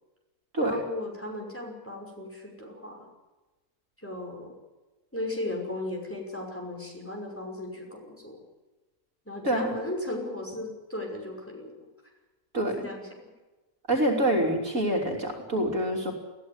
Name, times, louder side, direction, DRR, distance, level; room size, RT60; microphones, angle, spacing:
voice 1, 0.6-3.1 4.0-4.6 5.1-8.4 9.3-11.8 12.6-13.1, left 1 dB, 10° left, 0 dB, 5.5 m, -36 dB
voice 2, 9.4-9.8 12.5-12.9 13.9-16.1, right 1 dB, 55° right, 1 dB, 3.6 m, -26 dB
21.0 x 15.5 x 9.6 m, 1.2 s
omnidirectional pair, 1.6 m